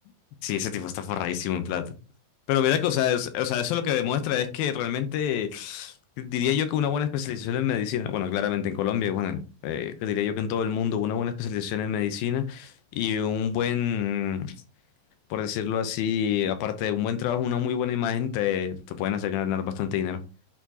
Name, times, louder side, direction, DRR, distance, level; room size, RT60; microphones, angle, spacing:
voice 1, 0.4-1.8 2.5-14.5 15.3-20.2, left 9 dB, 90° left, 2.7 m, -27 dB
10.5 x 4.6 x 2.8 m
omnidirectional pair, 4.1 m